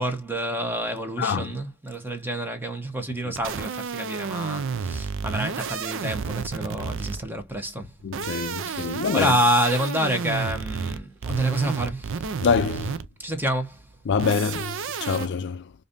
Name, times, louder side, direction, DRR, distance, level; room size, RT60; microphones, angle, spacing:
voice 1, 0.0-7.9 8.4-12.4 13.2-13.9, right 1 dB, 10° right, 1.0 m, -28 dB
voice 2, 1.2-1.6 3.2-3.3 8.0-9.4 12.4-13.0 14.1-15.7, left 5 dB, 55° left, 0.4 m, -25 dB
sound 1, 3.4-7.4 8.0-13.2 14.2-15.3, right 6 dB, 65° right, 0.5 m, -31 dB
5.1 x 2.7 x 2.6 m
head